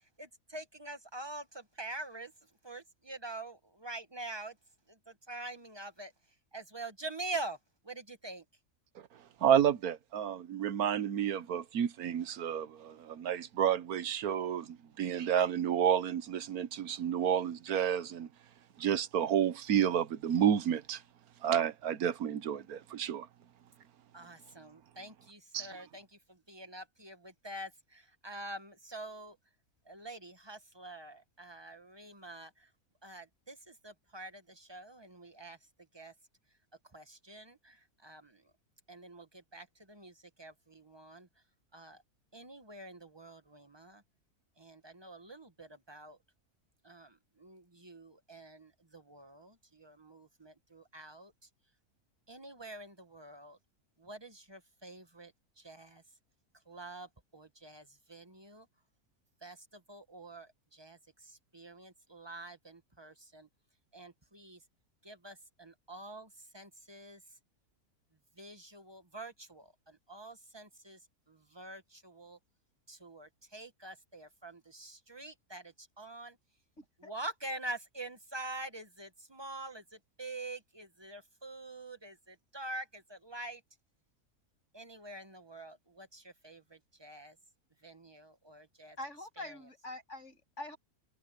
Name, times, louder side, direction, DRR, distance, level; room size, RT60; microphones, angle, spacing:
voice 1, 0.2-2.3 2.6-4.5 4.9-6.1 6.5-7.6 7.8-8.4 24.1-29.4 29.8-32.7 33.0-35.6 35.9-36.1 36.9-38.4 38.9-41.3 41.7-42.0 42.3-44.0 44.6-46.2 46.8-51.3 52.3-53.6 54.0-56.0 56.7-58.7 59.4-63.5 63.9-64.6 65.0-67.2 68.4-71.0 71.3-72.4 72.9-76.4 77.0-83.6 84.7-87.4 87.8-89.0 89.4-89.6, right 2 dB, 20° right, 1.4 m, -46 dB
voice 2, 9.4-18.3 18.8-21.0 21.4-23.3 25.5-25.7, right 9 dB, 75° right, 1.4 m, -30 dB
voice 3, 76.8-77.1 89.0-90.8, left 1 dB, 50° left, 8.5 m, -45 dB
omnidirectional pair, 1.6 m